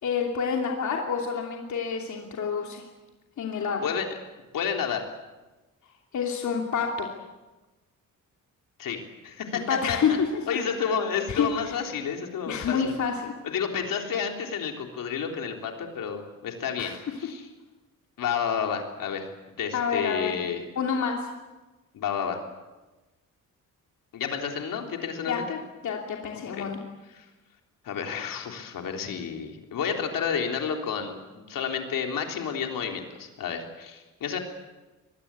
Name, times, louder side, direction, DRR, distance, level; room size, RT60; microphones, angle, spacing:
voice 1, 0.0-2.9 3.4-3.9 6.1-7.1 9.5-10.2 11.3-11.8 12.5-13.3 16.8-17.0 19.7-20.3 20.8-21.2 25.3-25.4 25.8-26.8, left 6 dB, 60° left, 1 dB, 2.9 m, -28 dB
voice 2, 4.5-5.0 8.8-9.6 9.9-10.2 10.5-12.8 13.4-17.5 18.2-19.3 19.6-20.7 21.9-22.4 24.1-25.6 26.5-26.7 27.1-27.2 27.8-34.4, left 7 dB, 80° left, 3 dB, 3.7 m, -30 dB
25.5 x 21.0 x 8.5 m, 1.1 s
wide cardioid pair, 170°, 33 cm